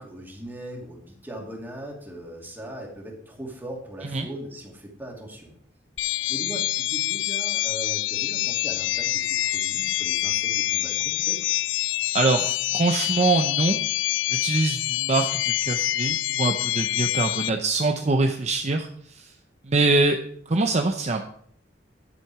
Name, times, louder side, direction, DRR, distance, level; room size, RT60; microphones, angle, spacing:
voice 1, 0.0-5.6 6.1-11.4, right 1 dB, 10° right, -1 dB, 2.5 m, -39 dB
sound 1, 6.0-17.5, left 15 dB, 75° left, 0.4 m, -26 dB
voice 2, 12.1-13.8 14.3-19.3 19.6-20.2 20.5-21.2, right 3 dB, 40° right, 4 dB, 0.7 m, -24 dB
11.0 x 7.5 x 4.8 m, 0.63 s
head